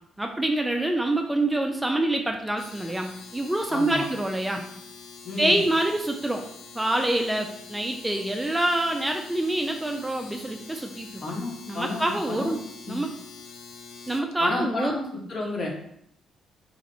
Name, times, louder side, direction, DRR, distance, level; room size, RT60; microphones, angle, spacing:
voice 1, 0.2-4.6 5.4-6.4 6.8-11.1 11.7-12.6 12.9-13.1 14.1-15.0, right 1 dB, 10° right, 4 dB, 0.3 m, -26 dB
Domestic sounds home sounds, 2.5-14.3, left 5 dB, 85° left, 0.4 m, -45 dB
voice 2, 3.7-4.1 5.2-5.6 11.2-12.6 12.8-13.0 14.4-15.0 15.3-15.9, left 2 dB, 50° left, -2 dB, 1.0 m, -31 dB
3.1 x 2.8 x 2.6 m, 0.72 s
cardioid pair, 90°, 0 cm